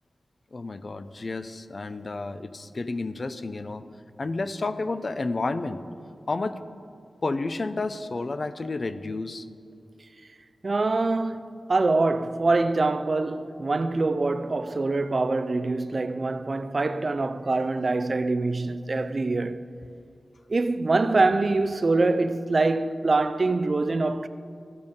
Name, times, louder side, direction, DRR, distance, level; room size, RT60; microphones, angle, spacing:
voice 1, 0.5-3.8 4.2-5.8 6.3-6.6 7.2-9.5, left 3 dB, 45° left, 0.4 m, -31 dB
voice 2, 10.6-19.7 20.5-24.3, right 3 dB, 45° right, 0.3 m, -24 dB
14.5 x 5.3 x 5.2 m
wide cardioid pair, 110°, 0 cm